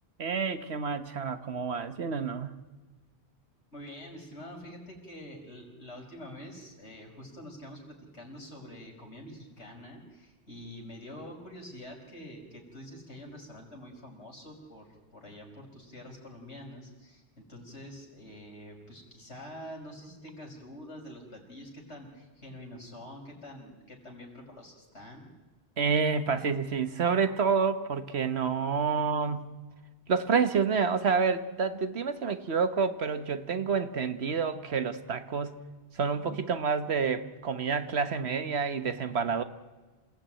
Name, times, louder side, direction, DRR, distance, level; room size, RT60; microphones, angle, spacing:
voice 1, 0.2-2.5 25.8-29.5 30.1-35.6 35.9-39.4, right 5 dB, 70° right, 10 dB, 1.4 m, -28 dB
voice 2, 3.7-25.3, equal, 80° left, 0 dB, 5.5 m, -46 dB
27.5 x 17.0 x 9.0 m, 1.3 s
omnidirectional pair, 1.1 m